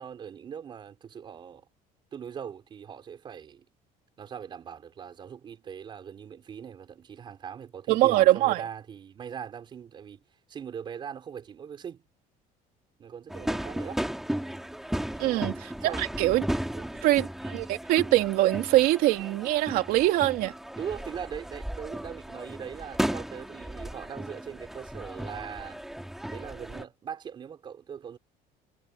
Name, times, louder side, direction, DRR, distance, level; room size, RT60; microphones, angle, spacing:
voice 1, 0.0-1.6 2.1-3.6 4.2-10.2 10.5-12.0 13.0-14.0 15.1-15.5 15.8-16.4 16.7-17.3 20.8-25.8 26.3-28.2, right 8 dB, 30° right, 4.7 m, -41 dB
voice 2, 7.9-8.6 15.2-15.5 15.8-16.5 17.0-20.5, right 16 dB, 65° right, 2.8 m, -23 dB
sound 1, 13.3-26.8, right 1 dB, ahead, 2.6 m, -35 dB
cardioid pair, 175°, 16 cm